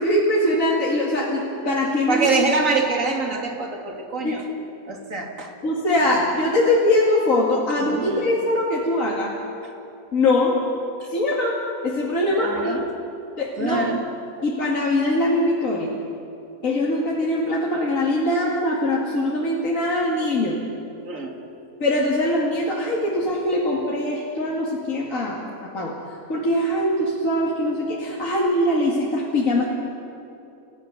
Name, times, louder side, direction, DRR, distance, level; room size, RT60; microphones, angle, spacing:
voice 1, 0.0-2.3 4.2-4.3 5.6-9.4 10.1-10.6 11.1-12.8 13.4-13.9 14.4-15.9 16.6-20.6 21.8-26.0 26.3-29.6, left 1 dB, 60° left, -4 dB, 2.8 m, -22 dB
voice 2, 2.1-4.4 4.9-5.5 7.8-8.3 11.0-11.1 12.3-12.9 13.6-14.0 21.0-21.3, right 3 dB, 60° right, 2 dB, 2.9 m, -25 dB
30.0 x 16.0 x 6.9 m, 2.8 s
omnidirectional pair, 1.5 m